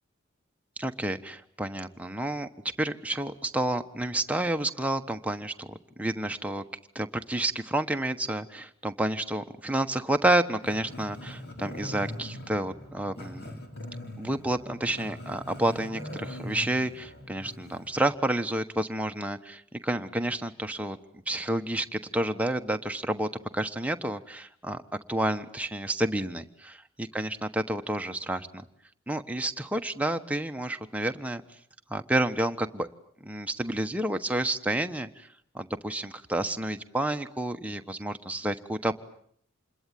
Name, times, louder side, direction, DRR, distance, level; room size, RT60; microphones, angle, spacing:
voice 1, 0.8-2.5 2.8-6.6 6.9-13.5 14.2-21.0 21.3-24.8 25.1-28.6 29.1-31.4 31.9-32.9 33.2-35.3 35.5-39.0, right 1 dB, 5° right, 6 dB, 1.2 m, -30 dB
Growling, 10.6-17.9, left 1 dB, 55° left, 4.1 m, -41 dB
27.5 x 21.5 x 9.3 m, 0.65 s
head